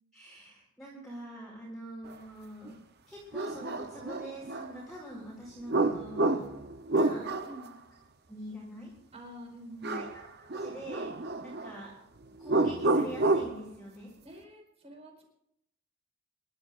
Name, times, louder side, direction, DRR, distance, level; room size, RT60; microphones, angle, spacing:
voice 1, 0.1-2.8 3.1-6.5 6.9-7.3 8.3-8.9 9.9-11.2 11.4-11.9 12.4-14.1, right 1 dB, ahead, -6 dB, 4.8 m, -45 dB
sound 1, 2.7-2.8 3.3-4.7 5.7-7.7 9.8-10.3 10.5-11.7 12.4-13.6, right 2 dB, 50° right, 0.9 m, -29 dB
voice 2, 7.4-7.8 9.1-10.1 14.2-15.2, equal, 30° right, 1 dB, 4.8 m, -47 dB
27.5 x 12.5 x 2.6 m, 0.77 s
head